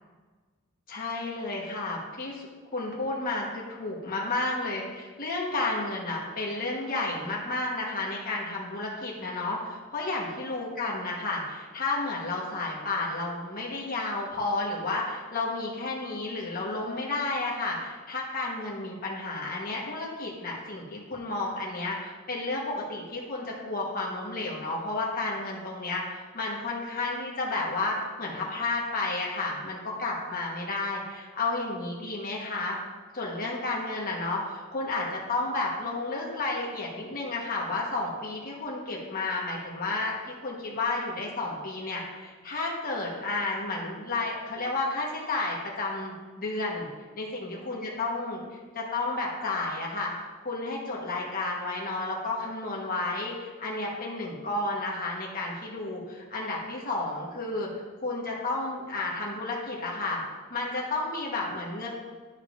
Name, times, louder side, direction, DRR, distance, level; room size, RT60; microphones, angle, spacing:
voice 1, 0.9-2.5 2.7-32.8 33.1-46.9 47.2-48.4 48.7-50.1 50.4-57.7 58.0-60.2 60.5-61.9, left 2 dB, 40° left, -3 dB, 1.2 m, -32 dB
12.0 x 5.1 x 2.5 m, 1.4 s
head